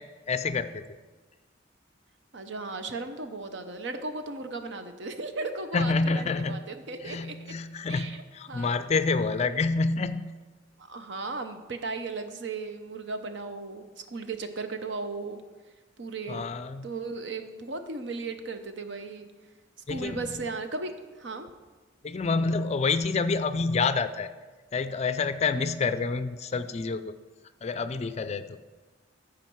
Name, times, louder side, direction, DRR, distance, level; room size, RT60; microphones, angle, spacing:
voice 1, 0.3-0.9 5.7-6.6 7.0-10.3 16.3-16.9 19.9-20.2 22.0-24.3 24.7-27.1 27.6-28.5, left 4 dB, 35° left, 12 dB, 0.4 m, -28 dB
voice 2, 2.3-7.3 7.9-8.2 8.5-8.7 10.8-13.8 14.1-15.4 16.0-16.5 16.8-19.3 19.9-21.5, right 3 dB, 65° right, 7 dB, 0.8 m, -36 dB
14.5 x 5.1 x 4.6 m, 1.3 s
head